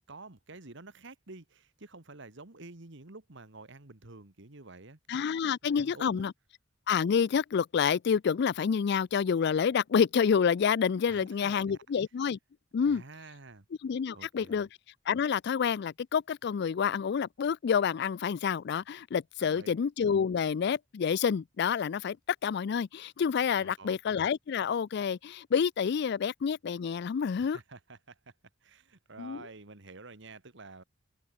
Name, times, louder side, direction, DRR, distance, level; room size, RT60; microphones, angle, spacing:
voice 1, 0.1-5.0 5.6-6.3 11.1-11.8 12.8-13.7 14.1-14.7 19.4-19.8 23.6-24.0 27.4-28.3 28.6-30.8, right 3 dB, 65° right, 1.9 m, -49 dB
voice 2, 5.1-6.3 6.9-12.4 12.7-13.0 13.8-14.7 15.1-22.2 22.4-27.6 29.2-29.4, left 7 dB, 60° left, 0.4 m, -28 dB
open air
head